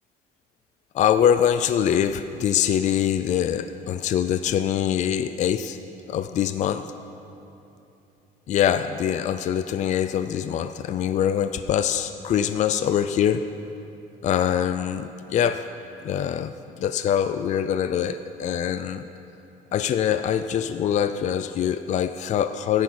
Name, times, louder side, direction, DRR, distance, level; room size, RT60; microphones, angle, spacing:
voice 1, 0.9-5.8 6.1-6.9 8.5-13.4 14.2-15.6 16.0-19.0 19.7-22.8, left 9 dB, 45° left, 10 dB, 0.4 m, -24 dB
14.0 x 10.5 x 4.3 m, 2.9 s
cardioid pair, 110°, 17 cm